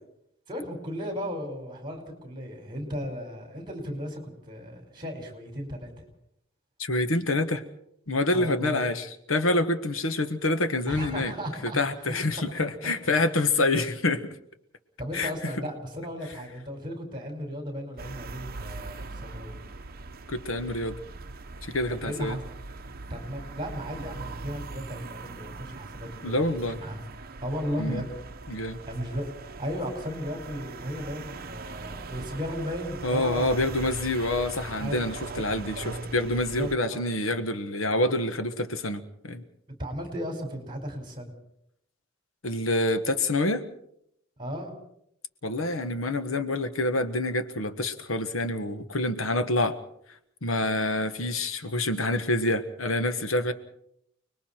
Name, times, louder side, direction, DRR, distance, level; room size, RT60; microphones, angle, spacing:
voice 1, 0.5-5.9 8.3-8.9 10.9-12.2 13.0-13.1 15.0-19.6 21.9-22.4 23.1-27.0 27.4-28.1 28.5-29.3 29.6-33.6 34.8-35.4 36.6-37.0 39.8-41.3 44.4-44.7, equal, 25° right, 4 dB, 5.2 m, -35 dB
voice 2, 6.8-7.6 8.1-11.3 11.6-14.3 15.1-15.3 20.3-21.0 21.7-22.4 26.2-26.8 27.8-28.0 28.5-28.8 33.0-39.4 42.4-43.7 45.4-49.8 50.4-53.5, left 2 dB, 80° left, 9 dB, 1.4 m, -27 dB
sound 1, 18.0-36.8, right 3 dB, 50° right, 0.9 m, -41 dB
30.0 x 21.0 x 4.5 m, 0.74 s
head